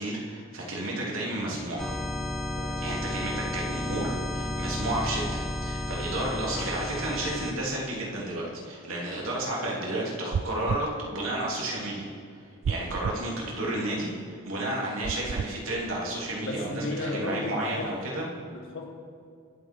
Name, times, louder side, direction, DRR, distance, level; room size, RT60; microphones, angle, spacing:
voice 1, 0.0-1.9 2.8-12.1 12.7-18.3, right 1 dB, 80° right, -4 dB, 3.1 m, -32 dB
sound 1, 1.8-7.5, left 1 dB, ahead, 0.7 m, -32 dB
voice 2, 2.6-2.9 16.4-18.0 18.5-18.9, left 2 dB, 65° left, 1 dB, 1.4 m, -35 dB
sound 2, 10.3-10.9 12.6-13.2 15.0-15.5, right 6 dB, 65° right, 0.3 m, -31 dB
23.5 x 8.0 x 4.6 m, 2.2 s
head